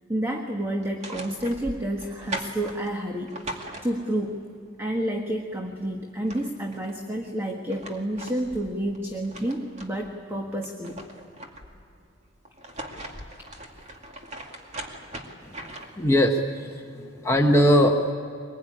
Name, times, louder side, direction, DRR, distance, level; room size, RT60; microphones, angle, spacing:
voice 1, 0.1-4.4 4.8-11.0, right 1 dB, 10° right, 2 dB, 1.5 m, -30 dB
sound 1, 0.8-4.3 5.8-5.9 6.1-7.0 7.5-10.1 10.5-11.9 12.5-16.1, right 1 dB, 35° right, 2.4 m, -40 dB
voice 2, 16.0-18.1, equal, 15° left, 1 dB, 1.2 m, -21 dB
24.0 x 21.5 x 10.0 m, 2.5 s
head